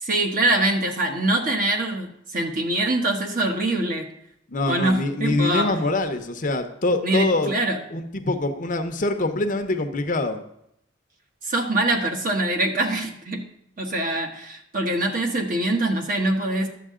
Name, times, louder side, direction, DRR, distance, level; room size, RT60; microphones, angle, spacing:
voice 1, 0.0-4.1 4.7-5.7 7.0-7.8 11.4-13.5 13.8-16.7, right 1 dB, 45° right, 3 dB, 1.2 m, -24 dB
voice 2, 4.5-7.5 7.9-10.4, left 2 dB, 45° left, 7 dB, 0.8 m, -24 dB
11.0 x 7.5 x 3.7 m, 0.75 s
head